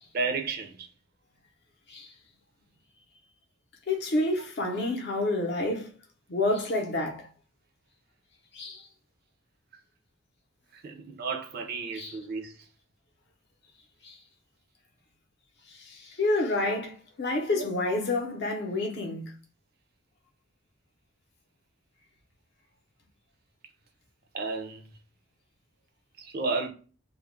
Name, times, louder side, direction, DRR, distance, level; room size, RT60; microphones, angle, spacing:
voice 1, 0.1-0.9 10.7-12.5 17.5-17.7 24.3-24.8 26.2-26.7, right 4 dB, 45° right, 0.4 m, -32 dB
voice 2, 3.9-5.9 6.3-7.3 8.5-8.9 11.9-12.2 14.0-14.2 15.8-19.3, left 2 dB, 50° left, 0.6 m, -29 dB
2.2 x 2.1 x 3.0 m
head